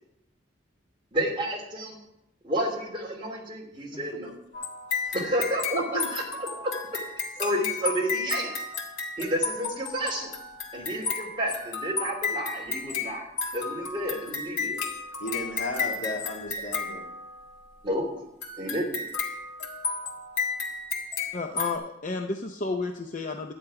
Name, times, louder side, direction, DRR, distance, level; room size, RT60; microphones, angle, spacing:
voice 1, 1.1-2.0 2.4-4.3 5.1-6.7 7.4-8.5 9.2-10.3 10.7-13.2 13.5-14.8 17.8-18.0 18.6-19.0, equal, 25° right, -1 dB, 2.8 m, -30 dB
sound 1, 4.5-17.7 18.4-21.8, left 5 dB, 90° left, 2.0 m, -33 dB
voice 2, 5.7-6.1 15.2-17.1, left 1 dB, 75° left, 0 dB, 2.2 m, -34 dB
voice 3, 21.3-23.5, left 3 dB, 40° left, 4 dB, 0.7 m, -31 dB
12.0 x 9.4 x 4.8 m, 0.84 s
head